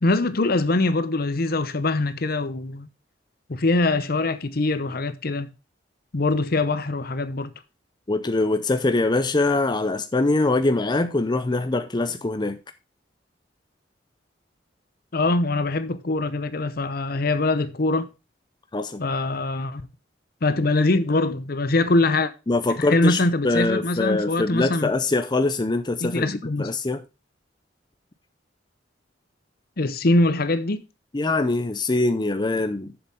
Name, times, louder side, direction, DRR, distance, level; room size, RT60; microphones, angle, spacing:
voice 1, 0.0-2.9 3.5-5.5 6.1-7.5 15.1-18.1 19.0-19.9 20.4-22.3 22.8-24.9 26.0-26.7 29.8-30.8, left 2 dB, 55° left, 0.8 m, -23 dB
voice 2, 8.1-12.6 18.7-19.0 22.5-27.0 31.1-32.9, left 2 dB, 25° left, 0.6 m, -23 dB
7.2 x 7.0 x 5.4 m
head